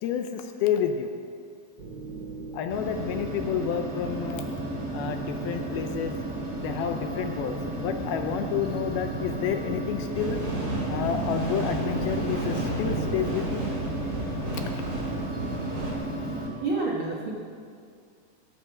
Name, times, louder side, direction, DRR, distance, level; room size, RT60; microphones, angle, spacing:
voice 1, 0.0-1.1 2.5-4.5 4.9-6.2 6.6-10.4 10.9-13.6 14.8-14.9, left 8 dB, 80° left, 6 dB, 2.3 m, -30 dB
sound 1, 1.8-13.7, right 5 dB, 70° right, 1.7 m, -42 dB
sound 2, 2.7-16.5, right 1 dB, 10° right, 1.5 m, -34 dB
sound 3, 10.1-15.9, right 2 dB, 30° right, 3.6 m, -31 dB
voice 2, 16.6-17.3, right 3 dB, 85° right, -3 dB, 1.1 m, -28 dB
21.0 x 7.7 x 6.0 m, 2.3 s
omnidirectional pair, 4.8 m